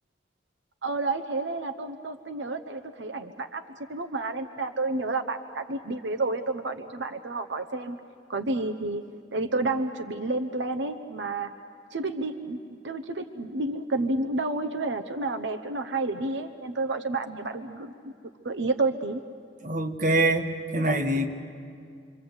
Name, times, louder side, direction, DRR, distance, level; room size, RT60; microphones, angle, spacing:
voice 1, 0.8-3.6 3.9-8.0 8.3-9.0 9.3-11.5 11.9-18.1 18.4-19.2, right 2 dB, 85° right, 9 dB, 0.9 m, -30 dB
voice 2, 19.6-21.3, right 1 dB, 45° right, 3 dB, 1.5 m, -24 dB
27.5 x 24.5 x 8.0 m, 2.3 s
head